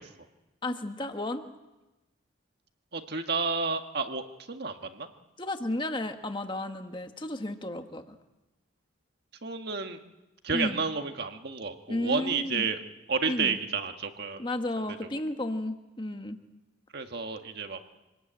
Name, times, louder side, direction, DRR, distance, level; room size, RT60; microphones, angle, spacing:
voice 1, 0.6-1.4 5.4-8.1 10.5-10.8 11.9-12.7 13.2-13.6 14.4-16.4, left 1 dB, 25° left, 6 dB, 1.4 m, -33 dB
voice 2, 2.9-5.1 9.4-10.0 10.4-12.8 13.1-14.4 14.8-14.9 16.9-17.8, right 5 dB, 50° right, 6 dB, 1.7 m, -31 dB
26.5 x 19.5 x 9.0 m, 1.1 s
head